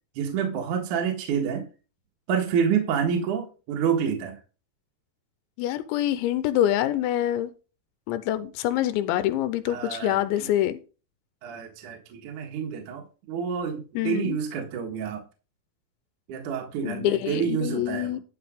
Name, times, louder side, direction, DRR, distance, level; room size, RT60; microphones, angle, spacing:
voice 1, 0.2-1.7 2.3-4.4 9.7-10.5 11.4-15.2 16.3-18.2, right 7 dB, 60° right, 2 dB, 2.4 m, -28 dB
voice 2, 5.6-7.5 8.1-10.8 14.0-14.4 16.8-18.2, left 12 dB, 85° left, 13 dB, 3.0 m, -25 dB
12.0 x 5.0 x 5.1 m, 0.33 s
omnidirectional pair, 5.2 m